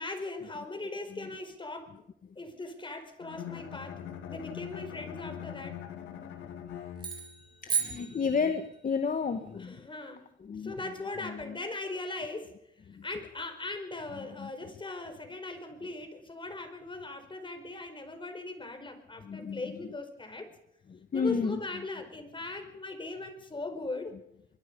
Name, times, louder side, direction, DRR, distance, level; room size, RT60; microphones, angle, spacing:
voice 1, 0.0-2.0 2.3-5.8 9.6-10.3 10.6-12.6 13.0-20.5 21.1-24.2, left 2 dB, 25° left, 7 dB, 4.8 m, -39 dB
Bowed string instrument, 3.2-7.5, left 9 dB, 85° left, 3.0 m, -42 dB
sound 1, 7.0-8.9, right 7 dB, 25° right, 6.5 m, -34 dB
voice 2, 7.6-9.7 10.4-10.8 11.2-11.5 12.9-13.0 14.4-14.5 19.2-19.8 20.9-21.6, left 5 dB, 45° left, 8 dB, 1.6 m, -32 dB
23.5 x 22.0 x 5.4 m, 0.77 s
cardioid pair, 90°, 20 cm